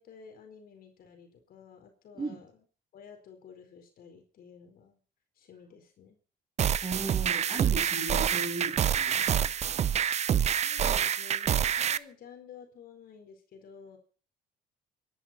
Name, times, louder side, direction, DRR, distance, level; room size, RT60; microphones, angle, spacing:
voice 1, 0.0-2.5 2.9-5.0 5.4-6.2 10.4-14.0, left 6 dB, 60° left, 5 dB, 4.3 m, -52 dB
sound 1, 6.6-12.0, right 9 dB, 40° right, 0.7 m, -27 dB
voice 2, 6.8-9.5, right 3 dB, 25° right, 3 dB, 7.3 m, -37 dB
24.5 x 11.0 x 4.3 m, 0.38 s
cardioid pair, 110°, 17 cm